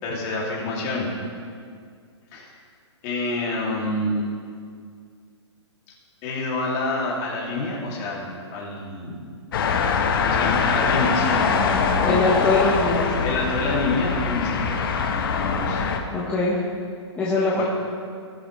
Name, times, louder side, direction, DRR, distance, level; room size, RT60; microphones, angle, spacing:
voice 1, 0.0-1.1 2.3-2.5 3.0-4.2 6.2-9.2 10.2-12.2 13.2-14.9 15.3-15.8 17.5-17.6, left 2 dB, 25° left, -4 dB, 2.5 m, -27 dB
sound 1, 9.5-16.0, left 5 dB, 50° left, 1.1 m, -23 dB
voice 2, 12.0-13.2 16.1-16.6 17.2-17.6, left 2 dB, 10° left, -8 dB, 1.2 m, -22 dB
19.0 x 7.8 x 3.2 m, 2.1 s
hypercardioid pair, 160°, 15 cm